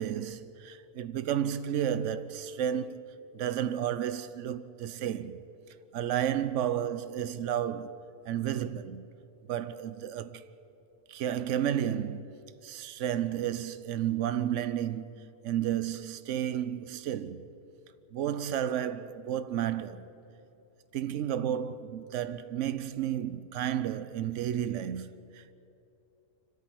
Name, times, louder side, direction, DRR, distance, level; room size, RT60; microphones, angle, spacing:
voice 1, 0.0-5.4 5.9-9.1 9.5-10.4 11.1-12.2 12.6-17.5 18.1-20.1 20.9-25.5, right 10 dB, 70° right, 1.1 m, -32 dB
25.0 x 13.0 x 9.4 m
omnidirectional pair, 1.4 m